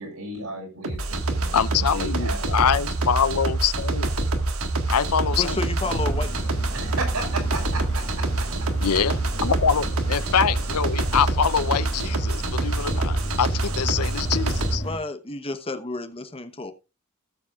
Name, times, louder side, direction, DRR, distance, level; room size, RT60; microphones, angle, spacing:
voice 1, 0.0-2.9 6.7-8.5, right 2 dB, 85° right, 5.7 m, -35 dB
sound 1, 0.8-14.8, right 2 dB, 70° right, 1.7 m, -26 dB
voice 2, 1.5-4.1 4.9-5.6 8.8-14.8, left 7 dB, 85° left, 0.7 m, -24 dB
voice 3, 5.4-6.5 14.7-16.7, left 2 dB, 25° left, 0.9 m, -31 dB
sound 2, 5.8-15.0, left 1 dB, 60° left, 2.4 m, -36 dB
18.0 x 7.3 x 2.4 m
head